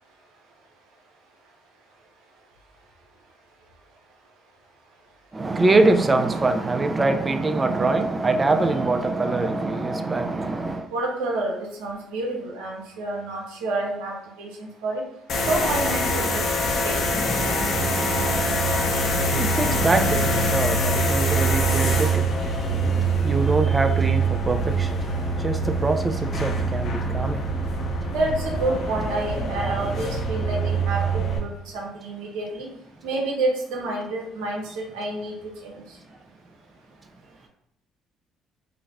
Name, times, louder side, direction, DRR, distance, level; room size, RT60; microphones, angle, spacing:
voice 1, 5.3-10.9 17.4-28.1, right 2 dB, 25° right, 0.3 m, -24 dB
voice 2, 10.9-15.0 15.5-16.5 16.7-17.0 28.1-32.7 33.0-35.3 35.6-35.8, right 2 dB, 75° right, 0.6 m, -28 dB
sound 1, 15.3-31.4, right 2 dB, 60° left, 0.6 m, -24 dB
2.4 x 2.1 x 3.2 m
hypercardioid pair, 55°, 0 cm